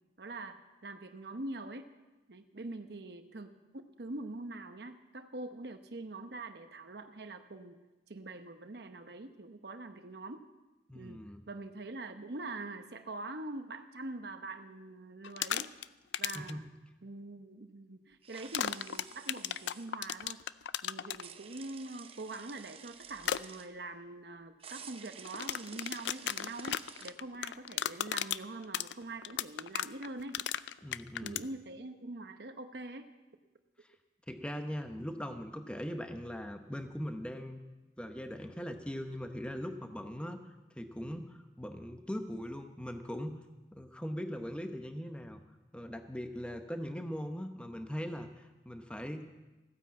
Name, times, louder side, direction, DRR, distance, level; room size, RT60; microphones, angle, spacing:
voice 1, 0.2-1.9 2.3-7.8 8.1-10.4 10.9-15.7 16.2-16.6 17.0-20.4 20.8-30.4 31.2-33.1, right 2 dB, 65° right, 7 dB, 0.9 m, -44 dB
voice 2, 10.9-11.4 16.3-16.7 30.8-31.4 34.3-37.6 38.0-40.4 40.8-43.4 43.7-45.4 45.7-49.5, equal, 5° left, 6 dB, 0.9 m, -40 dB
sound 1, 15.2-15.8 16.1-16.5 18.5-21.2 23.2-23.4 25.2-31.4, left 10 dB, 80° left, 0.4 m, -35 dB
sound 2, 18.2-19.9 21.2-23.7 24.6-27.1, right 7 dB, 30° right, 0.8 m, -51 dB
15.5 x 9.9 x 7.4 m, 1.1 s
head